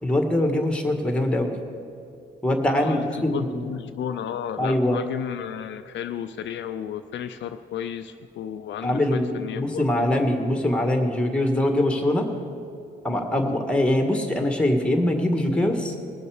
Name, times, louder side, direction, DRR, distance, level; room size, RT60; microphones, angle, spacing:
voice 1, 0.0-1.5 2.4-3.7 4.6-5.0 8.8-12.3 13.0-15.9, left 1 dB, 5° left, 4 dB, 1.7 m, -23 dB
voice 2, 2.8-10.1, left 9 dB, 65° left, 8 dB, 0.5 m, -33 dB
20.0 x 6.9 x 5.0 m, 2.4 s
cardioid pair, 90°, 20 cm